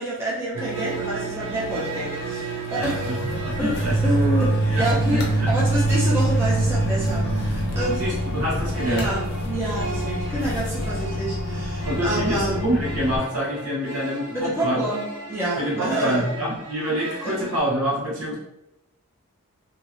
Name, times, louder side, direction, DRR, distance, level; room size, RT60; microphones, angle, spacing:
voice 1, 0.0-3.1 3.6-8.0 8.8-12.6 14.3-16.2, right 1 dB, 10° right, -8 dB, 0.7 m, -28 dB
sound 1, 0.5-17.6, right 3 dB, 60° right, 0.7 m, -28 dB
sound 2, 0.6-11.1, left 2 dB, 50° left, 0.7 m, -41 dB
Microwave oven, 2.8-13.2, left 2 dB, 85° left, 0.5 m, -29 dB
voice 2, 2.8-3.2 3.4-4.1 4.7-5.5 7.9-9.1 11.8-14.8 15.6-18.4, equal, 80° right, -6 dB, 1.3 m, -27 dB
2.9 x 2.5 x 2.9 m, 0.85 s
head